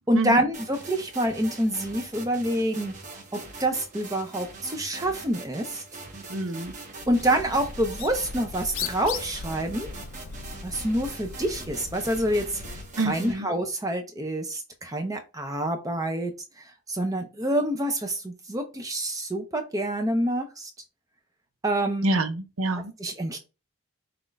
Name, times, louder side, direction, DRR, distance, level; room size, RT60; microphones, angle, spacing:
voice 1, 0.1-2.9 3.3-5.8 7.1-9.9 10.6-20.7 21.6-22.1 23.0-23.4, right 1 dB, 15° right, 0.6 m, -27 dB
sound 1, 0.5-13.3, right 3 dB, 35° right, 1.2 m, -43 dB
voice 2, 6.3-6.7 13.0-13.5 22.0-22.9, right 2 dB, 80° right, 0.8 m, -27 dB
Bird, 7.0-12.9, left 5 dB, 75° left, 0.5 m, -38 dB
5.8 x 2.5 x 3.3 m
head